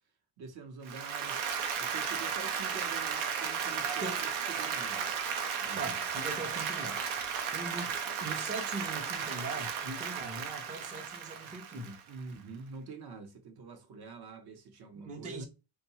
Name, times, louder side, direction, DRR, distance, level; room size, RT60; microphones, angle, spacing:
voice 1, 0.4-1.5 1.8-5.1 5.6-5.9 10.2-10.4 12.1-15.5, right 5 dB, 50° right, 0.8 m, -46 dB
Applause, 0.9-12.2, right 7 dB, 85° right, 0.7 m, -35 dB
voice 2, 5.7-12.0 14.9-15.4, right 2 dB, 15° right, 0.5 m, -41 dB
2.7 x 2.1 x 2.8 m
cardioid pair, 100°, 47 cm